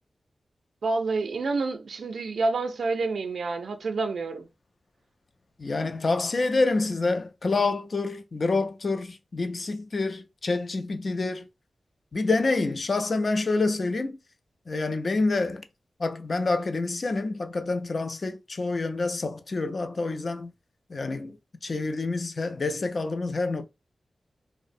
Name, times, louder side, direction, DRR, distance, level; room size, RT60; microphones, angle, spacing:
voice 1, 0.8-4.5, right 3 dB, 75° right, 0.4 m, -28 dB
voice 2, 5.6-11.5 12.1-14.2 14.7-15.6 16.0-20.5 20.9-23.7, left 3 dB, 45° left, 0.3 m, -27 dB
2.5 x 2.0 x 2.5 m
wide cardioid pair, 135°, 0 cm